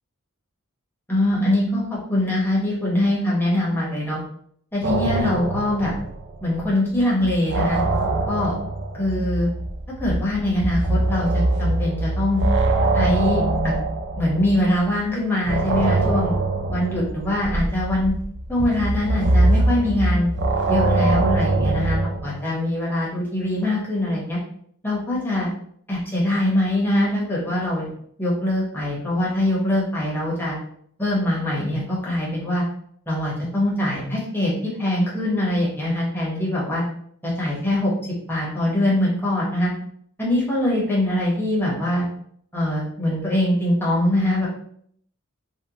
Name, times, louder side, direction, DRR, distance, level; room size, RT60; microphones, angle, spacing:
voice 1, 1.1-4.2 4.7-6.0 6.4-7.8 8.3-8.5 8.9-9.5 10.0-12.4 12.9-13.7 14.2-16.3 16.7-18.1 18.5-20.3 20.7-24.4 24.8-25.5 25.9-27.9 28.2-30.6 31.0-32.6 33.1-34.5 34.8-36.8 37.2-37.9 38.3-39.7 40.2-42.0 42.5-44.5, left 1 dB, 10° left, -5 dB, 0.9 m, -23 dB
sound 1, 4.8-6.7 7.0-14.9 15.4-22.3, right 2 dB, 55° right, 0.4 m, -23 dB
3.5 x 2.2 x 2.8 m, 0.65 s
head